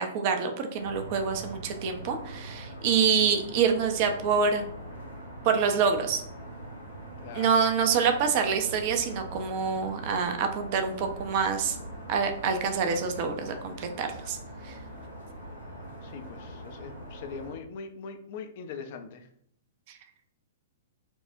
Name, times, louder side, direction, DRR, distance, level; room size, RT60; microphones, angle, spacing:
voice 1, 0.0-4.7 5.4-6.2 7.3-11.8 12.1-14.4 14.6-14.7, right 6 dB, 40° right, 6 dB, 0.4 m, -26 dB
sound 1, 0.7-17.6, right 1 dB, 85° left, 1.0 m, -42 dB
voice 2, 7.2-7.7 16.0-19.2, left 5 dB, 45° left, 7 dB, 0.4 m, -41 dB
4.4 x 2.1 x 2.5 m, 0.68 s
figure-of-eight pair, 110°, 0 cm